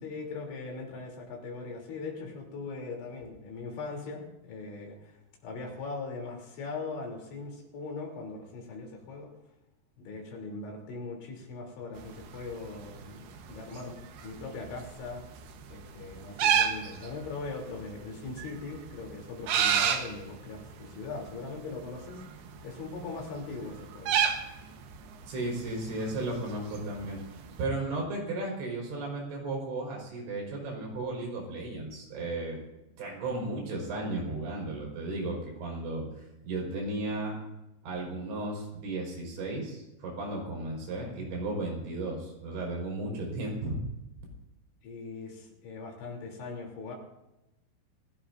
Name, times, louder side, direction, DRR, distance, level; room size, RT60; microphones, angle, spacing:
voice 1, 0.0-9.3 10.0-15.2 15.7-22.2 22.6-24.2 44.8-47.0, left 3 dB, 90° left, 0 dB, 5.7 m, -40 dB
sound 1, 12.0-27.6, right 8 dB, 70° right, 3.0 m, -34 dB
voice 2, 25.3-27.2 27.6-32.6 33.0-36.1 36.4-37.4 37.8-43.8, right 2 dB, 85° right, -1 dB, 7.2 m, -34 dB
27.0 x 17.0 x 2.6 m, 0.95 s
omnidirectional pair, 5.1 m